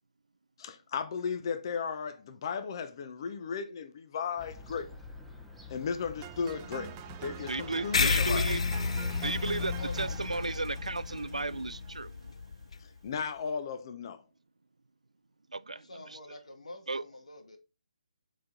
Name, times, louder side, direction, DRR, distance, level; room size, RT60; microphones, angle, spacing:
voice 1, 0.6-4.9 5.7-6.9 7.2-8.4 13.0-14.2, left 6 dB, 40° left, 0.9 m, -35 dB
Fowl / Gull seagull, 4.4-10.2, left 3 dB, ahead, 0.9 m, -48 dB
sound 1, 6.2-12.3, right 12 dB, 25° right, 0.5 m, -46 dB
voice 2, 7.4-8.6 9.2-12.4 15.5-16.2 16.9-17.0, right 3 dB, 90° right, 0.5 m, -34 dB
sound 2, 7.9-12.8, left 5 dB, 60° left, 0.4 m, -31 dB
voice 3, 9.6-10.1 15.7-17.6, left 1 dB, 75° left, 2.0 m, -47 dB
7.6 x 4.1 x 3.9 m
figure-of-eight pair, 145°, 4 cm